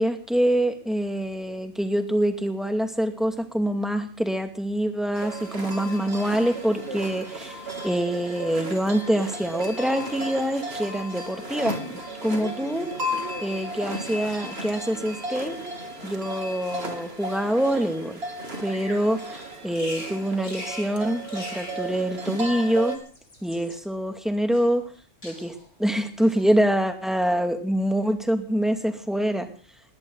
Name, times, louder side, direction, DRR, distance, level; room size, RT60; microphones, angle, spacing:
voice 1, 0.0-12.9 13.4-15.5 16.0-18.2 18.6-23.0 23.4-24.8 25.2-29.5, right 1 dB, ahead, 5 dB, 2.4 m, -25 dB
sound 1, 5.1-23.0, right 1 dB, 55° right, 3.1 m, -34 dB
Bird vocalization bird call bird song, 18.7-19.0 19.7-20.1 20.4-20.9 21.2-21.8 22.8-23.8 24.5-25.0 25.2-25.7 26.2-26.6, left 1 dB, 80° left, 6.9 m, -40 dB
20.5 x 17.5 x 4.0 m, 0.39 s
omnidirectional pair, 1.2 m